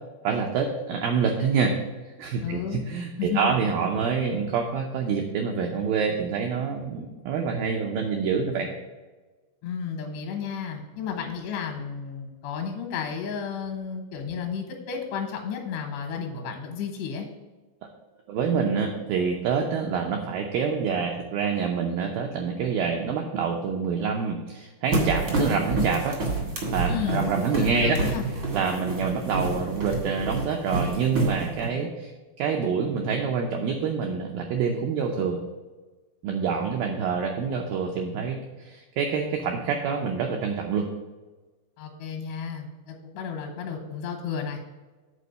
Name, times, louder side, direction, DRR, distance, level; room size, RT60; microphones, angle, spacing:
voice 1, 0.2-1.8 2.2-8.7 18.3-26.2 26.7-28.0 28.5-32.1 32.4-35.4 36.2-40.9, right 5 dB, 85° right, 2 dB, 2.0 m, -26 dB
voice 2, 2.4-2.8 3.2-3.6 9.6-17.3 26.8-28.2 28.7-28.8 41.8-44.6, left 6 dB, 75° left, 1 dB, 2.9 m, -32 dB
sound 1, 24.9-31.7, right 2 dB, 60° right, 1.1 m, -28 dB
8.3 x 4.3 x 6.5 m, 1.2 s
omnidirectional pair, 5.0 m